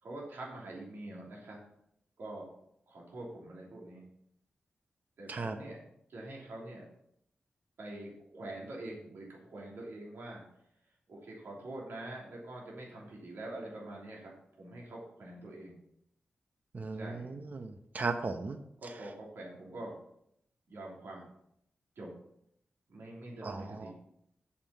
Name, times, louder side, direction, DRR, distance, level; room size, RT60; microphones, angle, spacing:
voice 1, 0.0-1.6 2.2-2.5 2.9-4.0 5.2-5.8 6.1-6.8 7.8-10.4 11.1-15.8 17.0-17.3 18.8-19.9 20.7-21.3 21.9-22.1 22.9-23.9, right 1 dB, 80° right, -3 dB, 3.0 m, -45 dB
voice 2, 16.7-18.6 23.4-23.9, right 3 dB, 50° right, 6 dB, 0.8 m, -36 dB
7.3 x 6.6 x 5.5 m, 0.74 s
wide cardioid pair, 80°, 4 cm